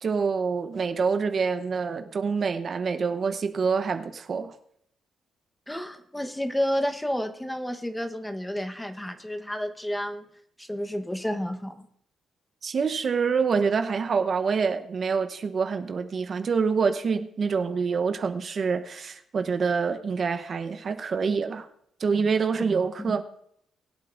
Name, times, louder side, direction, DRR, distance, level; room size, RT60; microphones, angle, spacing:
voice 1, 0.0-4.5 12.6-21.7 22.0-23.2, right 5 dB, 45° right, 0.9 m, -26 dB
voice 2, 5.7-10.2 10.6-11.8 23.0-23.2, equal, 10° left, 1.1 m, -30 dB
21.5 x 8.3 x 2.6 m
cardioid pair, 90°, 0 cm